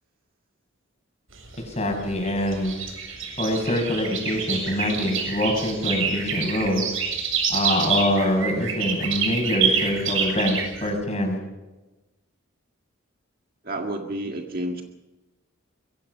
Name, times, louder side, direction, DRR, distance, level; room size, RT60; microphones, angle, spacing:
sound 1, 1.3-10.9, right 6 dB, 75° right, 7.6 m, -27 dB
voice 1, 1.6-2.7 3.4-6.9 7.5-11.4, left 1 dB, 30° left, 3 dB, 6.7 m, -24 dB
voice 2, 4.8-5.2 13.6-14.8, right 1 dB, 45° right, 2 dB, 1.9 m, -31 dB
26.0 x 23.0 x 5.6 m, 1.1 s
head